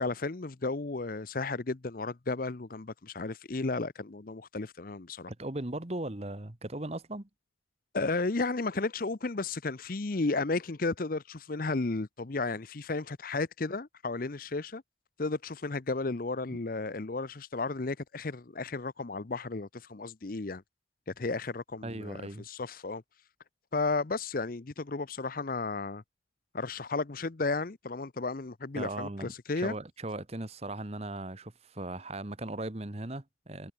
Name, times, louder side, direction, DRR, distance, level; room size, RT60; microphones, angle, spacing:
voice 1, 0.0-5.3 7.9-14.8 15.2-20.6 21.1-23.0 23.7-26.0 26.5-29.7, left 3 dB, 45° left, 0.7 m, -33 dB
voice 2, 5.3-7.3 21.8-22.5 28.7-33.7, right 2 dB, 30° right, 1.3 m, -38 dB
head